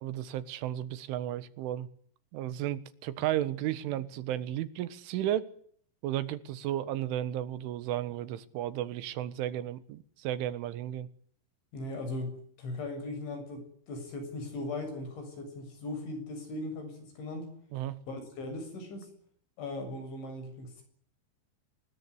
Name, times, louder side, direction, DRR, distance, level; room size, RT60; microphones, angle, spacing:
voice 1, 0.0-1.9 2.3-5.5 6.0-11.1 17.7-18.0, right 12 dB, 90° right, 3.9 m, -33 dB
voice 2, 11.7-17.5 18.1-19.1 19.6-20.8, left 2 dB, 75° left, 9.6 m, -38 dB
24.5 x 20.5 x 9.9 m
omnidirectional pair, 5.4 m